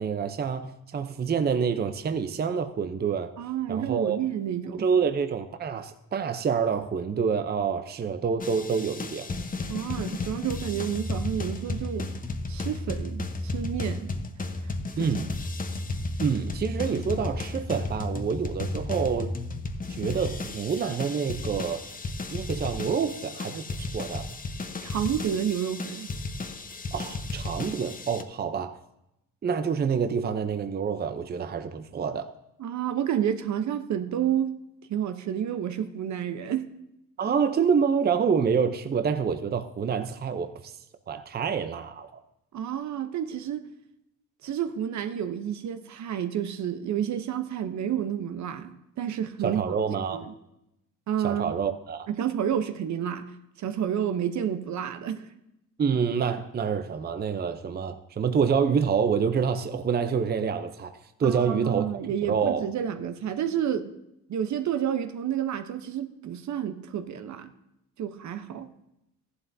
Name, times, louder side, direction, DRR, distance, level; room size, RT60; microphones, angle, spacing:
voice 1, 0.0-3.3 3.7-4.3 4.7-9.3 15.0-15.3 16.2-19.3 19.9-21.9 22.3-24.3 26.9-28.8 29.4-32.3 37.2-40.8 41.1-42.1 49.4-50.3 51.2-52.1 55.8-60.9 61.2-61.9 62.2-62.6, right 6 dB, 30° right, 8 dB, 0.7 m, -27 dB
voice 2, 3.4-4.9 9.7-12.1 12.5-14.1 24.8-26.1 32.6-34.6 34.9-36.7 42.5-43.6 44.4-49.6 50.1-50.2 51.1-51.5 52.1-53.3 53.6-55.2 61.2-63.9 64.3-67.5 68.0-68.7, right 9 dB, 55° right, 9 dB, 0.9 m, -30 dB
sound 1, 8.4-28.2, left 2 dB, 25° left, 1.0 m, -34 dB
14.5 x 11.0 x 2.7 m, 0.86 s
supercardioid pair, 75°, 34 cm